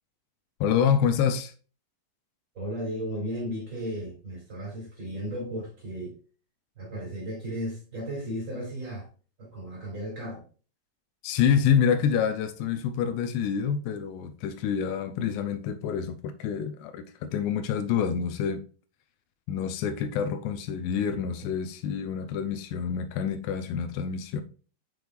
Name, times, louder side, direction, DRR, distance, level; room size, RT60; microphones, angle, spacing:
voice 1, 0.6-1.5 11.2-18.6 19.5-24.4, left 7 dB, 85° left, 2.8 m, -27 dB
voice 2, 2.5-6.2 6.8-9.1 9.4-10.5 21.4-21.5, equal, 30° right, 3.8 m, -35 dB
7.7 x 5.2 x 2.4 m
omnidirectional pair, 4.8 m